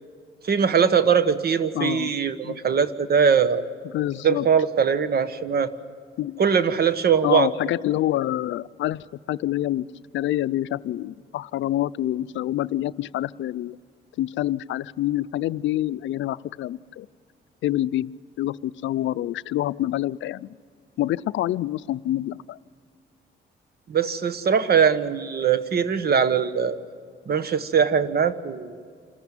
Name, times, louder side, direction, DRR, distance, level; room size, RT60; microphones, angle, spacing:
voice 1, 0.4-3.6 4.2-5.7 6.4-7.5 23.9-26.8 27.3-28.8, right 7 dB, 50° right, 13 dB, 1.3 m, -21 dB
voice 2, 1.7-2.1 2.4-2.6 3.8-4.5 6.2-6.4 7.2-9.9 10.1-13.8 14.2-17.1 17.6-18.1 18.4-20.6 21.0-22.6, left 14 dB, 70° left, 16 dB, 0.5 m, -27 dB
27.5 x 14.5 x 9.0 m, 2.1 s
cardioid pair, 90°, 20 cm